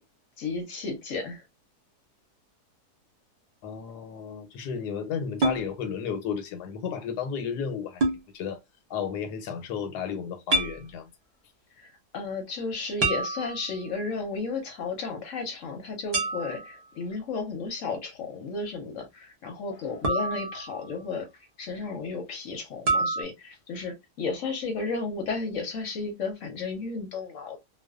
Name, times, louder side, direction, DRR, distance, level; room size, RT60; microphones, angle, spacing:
voice 1, 0.4-1.4 11.8-21.3 21.6-27.6, left 4 dB, 65° left, 0.9 m, -33 dB
voice 2, 3.6-8.0 8.3-8.6 8.9-11.1, left 7 dB, 90° left, 1.2 m, -33 dB
sound 1, 5.4-5.6 8.0-8.2 10.5-10.8 13.0-13.9 16.1-16.7 20.0-21.0 22.9-23.2, right 2 dB, 70° right, 0.3 m, -27 dB
2.4 x 2.2 x 2.3 m
omnidirectional pair, 1.7 m